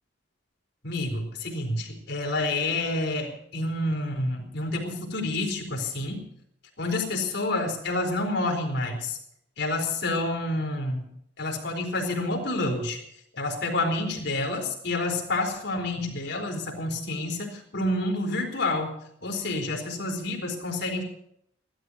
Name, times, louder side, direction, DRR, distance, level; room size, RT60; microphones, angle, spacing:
voice 1, 0.8-6.2 6.8-9.2 9.6-11.1 11.4-13.0 13.4-18.9 19.2-21.0, left 2 dB, 55° left, 2 dB, 4.3 m, -28 dB
16.5 x 13.0 x 6.4 m, 0.72 s
head